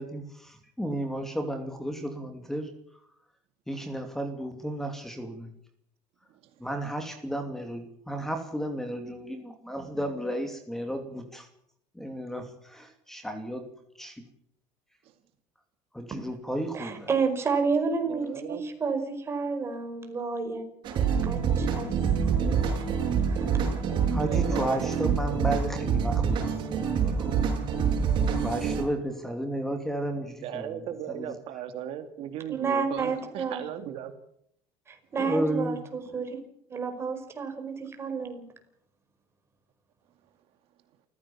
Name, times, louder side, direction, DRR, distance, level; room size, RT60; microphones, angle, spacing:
voice 1, 0.0-2.7 3.7-5.5 6.6-11.5 11.9-13.7 14.0-14.3 15.9-17.1 24.1-27.3 28.4-30.8 31.1-31.3 35.2-35.8, right 1 dB, 5° left, 6 dB, 2.7 m, -33 dB
voice 2, 16.7-20.7 21.0-21.9 22.4-22.6 23.3-23.5 32.5-33.6 34.9-36.4 36.7-38.4, right 5 dB, 20° right, 6 dB, 5.1 m, -30 dB
voice 3, 18.0-18.6 24.2-24.8 30.4-34.1, right 10 dB, 55° right, 8 dB, 2.3 m, -37 dB
sound 1, 20.8-28.8, right 6 dB, 40° right, 7.1 m, -26 dB
28.5 x 15.5 x 7.2 m, 0.71 s
cardioid pair, 155°, 11 cm